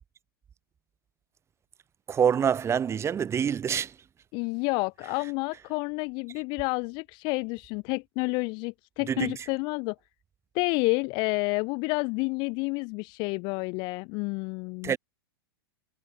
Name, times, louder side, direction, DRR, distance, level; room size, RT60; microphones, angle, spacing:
voice 1, 2.1-4.0 9.1-9.4 14.8-15.0, right 8 dB, 20° right, 2.1 m, -26 dB
voice 2, 4.3-10.0 10.5-14.9, left 30 dB, 40° left, 0.4 m, -29 dB
figure-of-eight pair, 100°, 13 cm